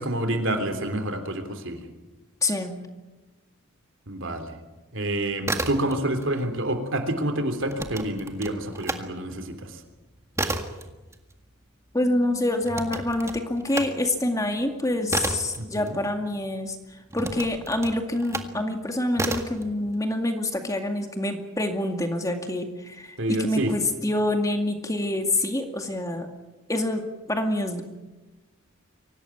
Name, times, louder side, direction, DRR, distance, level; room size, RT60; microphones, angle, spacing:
voice 1, 0.0-1.9 4.1-4.5 4.9-9.8 15.6-16.0 23.2-23.7, right 1 dB, 60° right, 7 dB, 3.4 m, -28 dB
voice 2, 2.4-2.8 11.9-26.3 26.7-27.8, left 1 dB, 15° left, 5 dB, 2.1 m, -26 dB
sound 1, 5.4-6.3 6.6-9.0 9.4-16.5 17.1-18.6 19.1-19.6, right 2 dB, 15° right, 1.8 m, -32 dB
24.5 x 18.0 x 9.4 m, 1.1 s
head